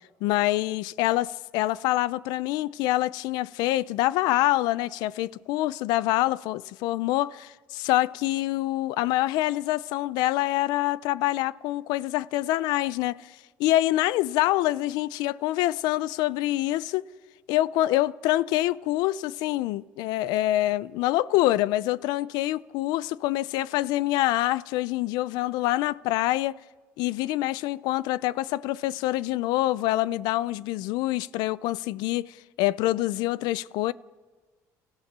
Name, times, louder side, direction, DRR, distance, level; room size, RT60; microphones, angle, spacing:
voice 1, 0.2-17.1 17.5-26.6 27.0-33.9, left 16 dB, 80° left, 0.5 m, -26 dB
30.0 x 14.5 x 6.8 m
supercardioid pair, 95°, 7 cm